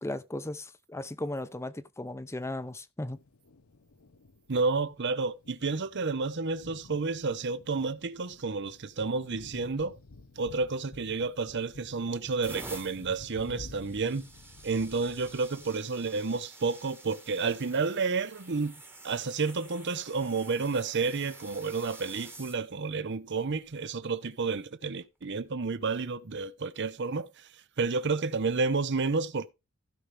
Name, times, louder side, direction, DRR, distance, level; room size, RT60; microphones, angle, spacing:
voice 1, 0.0-3.2, left 1 dB, 10° left, 0.6 m, -36 dB
Thunder, 3.1-15.7, left 2 dB, 70° left, 0.9 m, -52 dB
voice 2, 4.5-10.0 10.4-14.3 14.6-18.7 19.0-27.5 27.8-29.5, right 4 dB, 55° right, 0.8 m, -30 dB
sound 1, 11.4-11.8 12.3-22.6 23.4-23.7 25.2-25.4, right 2 dB, 10° right, 1.3 m, -49 dB
16.0 x 5.5 x 3.4 m
head